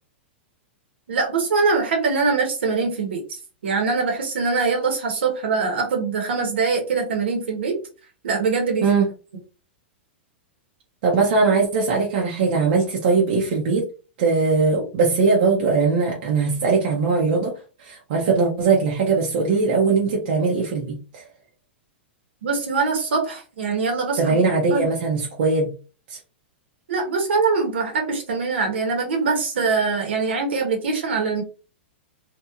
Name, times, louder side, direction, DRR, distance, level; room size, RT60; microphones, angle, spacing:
voice 1, 1.1-3.4 3.6-7.8 8.2-8.9 22.4-24.4 24.7-24.9 26.9-31.4, right 4 dB, 75° right, 1 dB, 1.1 m, -23 dB
voice 2, 11.0-13.9 14.2-21.3 24.2-25.7 26.1-26.2, right 4 dB, 60° right, -2 dB, 0.8 m, -20 dB
3.0 x 2.5 x 2.4 m, 0.35 s
hypercardioid pair, 105°, 6 cm